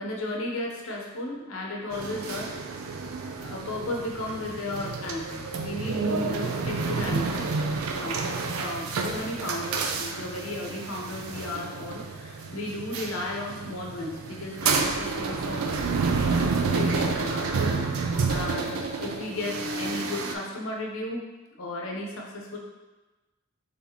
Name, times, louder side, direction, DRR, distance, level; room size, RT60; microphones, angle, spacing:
voice 1, 0.0-2.5 3.4-7.5 7.9-15.8 16.3-17.5 18.0-21.3 21.6-22.6, left 1 dB, 70° left, -1 dB, 0.7 m, -35 dB
sound 1, 1.9-20.3, right 4 dB, 85° right, 0.4 m, -29 dB
3.5 x 2.9 x 4.0 m, 1.2 s
head